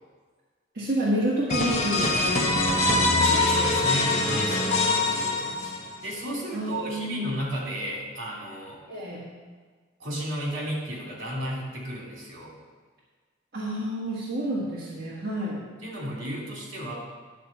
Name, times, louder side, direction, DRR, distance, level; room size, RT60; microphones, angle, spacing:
voice 1, 0.7-3.4 6.5-7.3 8.9-9.2 13.5-15.6, right 1 dB, 50° right, -8 dB, 1.7 m, -29 dB
sound 1, 1.5-6.1, left 2 dB, 35° left, 1.0 m, -23 dB
voice 2, 3.2-5.7 6.0-8.8 10.0-12.5 15.8-16.9, equal, 75° right, -3 dB, 2.8 m, -34 dB
10.5 x 4.2 x 7.0 m, 1.5 s
head